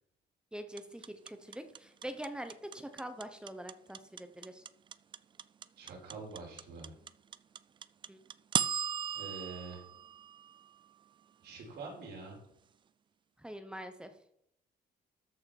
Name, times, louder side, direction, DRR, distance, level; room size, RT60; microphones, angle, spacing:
voice 1, 0.5-4.6 8.1-8.2 13.4-14.1, right 1 dB, 5° right, 8 dB, 0.9 m, -44 dB
sound 1, 0.8-10.9, right 7 dB, 30° right, 0.3 m, -37 dB
voice 2, 5.8-6.9 9.1-9.8 11.4-12.4, right 4 dB, 85° right, -2 dB, 5.0 m, -45 dB
13.5 x 5.7 x 6.0 m, 0.74 s
cardioid pair, 170°, 17 cm